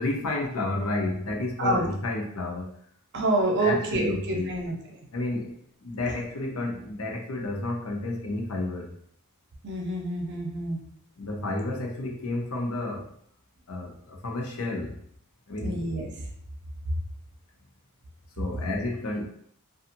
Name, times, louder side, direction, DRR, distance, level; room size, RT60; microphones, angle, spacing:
voice 1, 0.0-2.7 3.6-4.5 5.1-5.6 5.8-8.9 11.2-13.1 13.7-15.0 15.5-15.8 18.4-19.3, left 2 dB, 85° left, 1 dB, 0.7 m, -31 dB
voice 2, 3.1-4.7 9.6-10.8 15.6-16.1, right 2 dB, 55° right, 0 dB, 0.6 m, -27 dB
2.7 x 2.4 x 2.5 m, 0.65 s
head